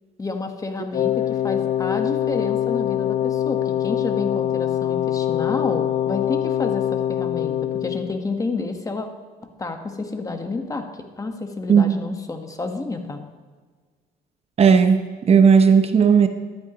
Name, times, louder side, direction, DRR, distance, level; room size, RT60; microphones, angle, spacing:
voice 1, 0.2-9.1 9.4-10.8 11.2-13.2, left 3 dB, 20° left, 5 dB, 1.3 m, -29 dB
Wind instrument woodwind instrument, 0.9-8.2, left 11 dB, 45° left, 0.4 m, -24 dB
voice 2, 14.6-16.3, right 6 dB, 35° right, 8 dB, 0.8 m, -15 dB
14.0 x 12.0 x 3.0 m, 1.5 s
cardioid pair, 110°, 17 cm